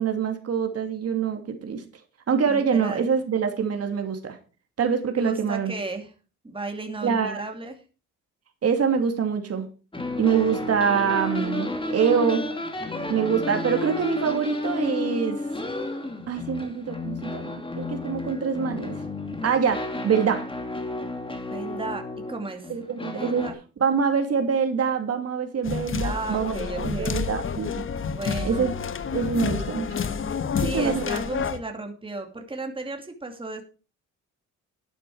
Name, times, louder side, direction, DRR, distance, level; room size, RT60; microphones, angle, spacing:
voice 1, 0.0-1.8 2.3-4.4 4.8-5.7 7.0-7.4 8.6-9.7 10.2-12.5 13.1-15.4 16.3-19.0 19.4-20.4 22.7-23.5 23.8-27.8 28.4-28.7 29.1-29.9 30.7-31.1, right 6 dB, 55° right, 5 dB, 2.6 m, -25 dB
voice 2, 2.4-3.1 5.2-6.1 6.4-7.7 21.4-22.8 23.1-23.5 26.0-27.3 28.1-28.7 30.6-33.6, right 3 dB, 15° right, 4 dB, 2.6 m, -34 dB
sound 1, 9.9-23.5, left 2 dB, 15° left, 2.7 m, -32 dB
sound 2, 25.6-31.6, left 6 dB, 45° left, 1.2 m, -29 dB
12.0 x 9.2 x 4.8 m, 0.34 s
cardioid pair, 90°, 30 cm